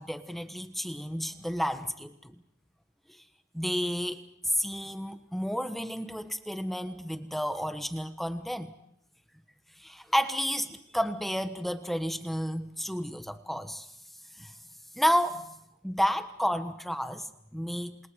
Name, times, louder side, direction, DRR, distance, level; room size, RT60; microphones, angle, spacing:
voice 1, 0.0-2.4 3.1-3.2 3.5-8.7 9.8-13.9 14.4-14.5 14.9-15.5 15.8-18.0, equal, ahead, 9 dB, 1.2 m, -31 dB
28.0 x 28.0 x 4.9 m, 0.79 s
head